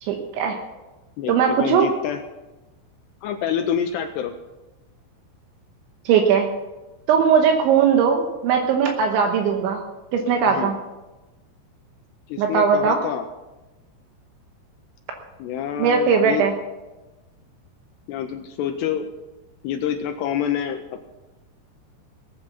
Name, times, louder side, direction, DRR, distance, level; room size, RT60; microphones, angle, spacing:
voice 1, 0.0-0.6 1.3-1.9 6.1-6.5 7.1-9.8 10.1-10.8 12.4-13.0 15.8-16.5, right 6 dB, 75° right, 3 dB, 3.3 m, -19 dB
voice 2, 1.2-2.2 3.2-4.3 10.5-10.7 12.3-13.3 15.4-16.5 18.1-19.1 19.6-21.0, left 9 dB, 85° left, 6 dB, 2.5 m, -27 dB
19.0 x 8.7 x 5.8 m, 1.1 s
omnidirectional pair, 5.5 m